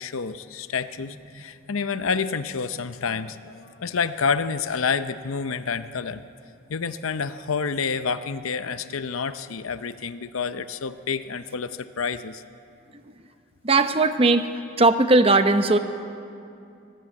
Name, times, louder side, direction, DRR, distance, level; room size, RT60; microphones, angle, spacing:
voice 1, 0.0-6.2 6.7-12.4, left 5 dB, 85° left, 11 dB, 0.7 m, -28 dB
voice 2, 13.6-14.5 14.8-15.8, right 2 dB, 30° right, 9 dB, 0.8 m, -18 dB
19.5 x 15.5 x 8.6 m, 2.5 s
head